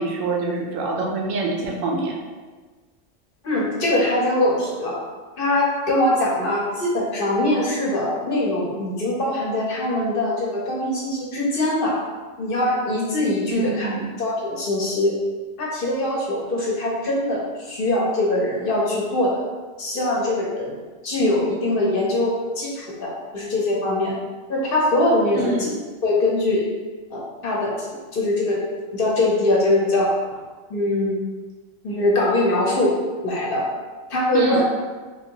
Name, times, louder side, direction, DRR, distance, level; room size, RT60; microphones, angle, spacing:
voice 1, 0.0-2.2 13.5-14.1 25.4-25.7 34.3-34.6, right 3 dB, 85° right, 0 dB, 1.0 m, -25 dB
voice 2, 3.4-5.0 5.4-12.0 12.4-13.9 14.2-15.1 15.6-19.4 19.8-20.8 21.0-24.2 24.5-25.7 26.0-26.6 27.1-28.6 28.9-30.1 30.7-31.2 31.8-32.9 33.2-33.7 34.1-34.6, left 1 dB, 50° left, -4 dB, 0.9 m, -22 dB
3.3 x 2.7 x 2.8 m, 1.3 s
omnidirectional pair, 1.3 m